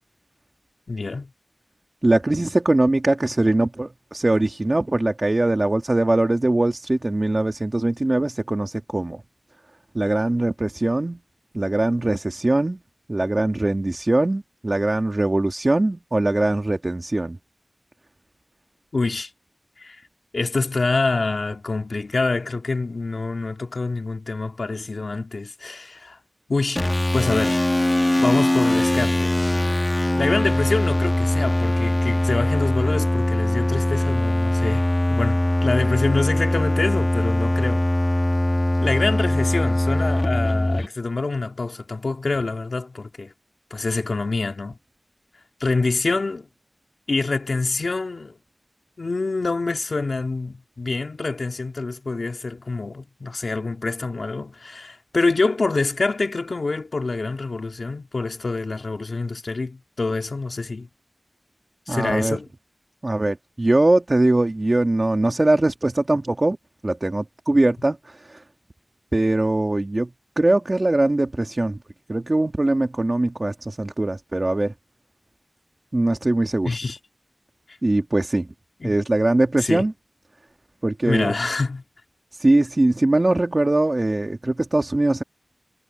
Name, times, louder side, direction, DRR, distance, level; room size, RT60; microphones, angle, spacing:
voice 1, 0.9-1.3 18.9-19.3 19.8-20.0 20.3-26.2 26.5-26.8 27.1-27.6 28.2-29.4 30.2-37.9 38.8-43.3 43.7-44.8 45.6-46.5 47.1-48.3 49.0-60.9 61.9-62.5 76.7-77.0 78.8-78.9 79.6-79.9 81.1-81.8, left 3 dB, 70° left, 2.7 m, -26 dB
voice 2, 2.0-9.2 9.9-11.2 11.5-12.8 13.1-17.4 61.9-62.4 63.0-66.6 66.8-68.4 69.1-70.1 70.4-71.8 72.1-74.7 75.9-76.7 77.8-78.5 78.8-79.9 80.8-81.4 82.3-85.2, right 2 dB, 40° right, 2.2 m, -21 dB
sound 1, 26.8-40.9, left 1 dB, 25° left, 1.7 m, -21 dB
wide cardioid pair, 50°, 0 cm